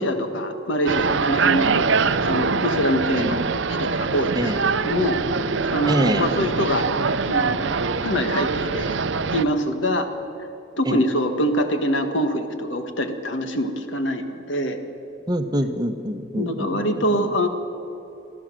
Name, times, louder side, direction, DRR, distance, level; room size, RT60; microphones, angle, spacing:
voice 1, 0.0-5.2 5.6-6.8 7.3-7.7 8.0-8.9 9.3-10.1 10.4-10.5 10.8-14.8 16.3-17.5, equal, 75° left, 7 dB, 1.7 m, -24 dB
sound 1, 0.9-9.4, right 4 dB, 70° right, 0.7 m, -23 dB
voice 2, 4.3-4.7 5.9-6.5 10.9-11.0 15.3-17.3, right 1 dB, 20° right, 7 dB, 0.9 m, -25 dB
24.0 x 14.0 x 7.6 m, 2.9 s
head